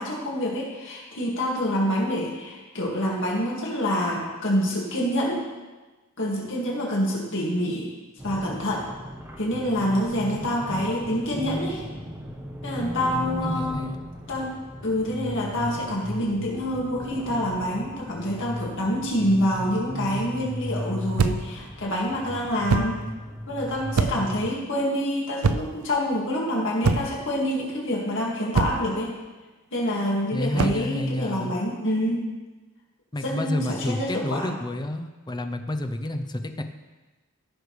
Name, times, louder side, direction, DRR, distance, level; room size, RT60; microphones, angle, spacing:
voice 1, 0.0-5.4 6.2-7.9 8.2-8.8 9.4-11.8 12.6-13.9 14.3-14.5 14.8-23.0 23.5-29.1 29.7-32.3 33.2-34.5, equal, 60° left, -3 dB, 2.0 m, -27 dB
sound 1, 8.2-24.5, equal, 10° right, 1.0 m, -36 dB
voice 2, 13.1-14.0 24.1-24.4 30.3-31.6 33.1-36.6, left 1 dB, 20° left, 7 dB, 0.6 m, -30 dB
sound 2, 21.2-21.6 22.7-23.0 24.0-24.4 25.4-25.8 26.8-27.3 28.6-28.9 30.6-30.9, right 4 dB, 90° right, 0.5 m, -24 dB
15.5 x 6.4 x 3.2 m, 1.2 s
head